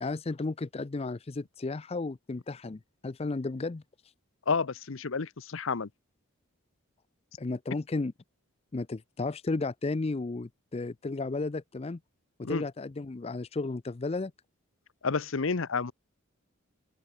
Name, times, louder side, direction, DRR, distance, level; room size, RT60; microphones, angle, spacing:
voice 1, 0.0-3.8 7.4-8.1 8.7-12.0 12.4-14.3, left 3 dB, 30° left, 0.4 m, -33 dB
voice 2, 4.5-5.9 12.4-12.7 15.0-15.9, left 4 dB, 65° left, 0.8 m, -30 dB
open air
head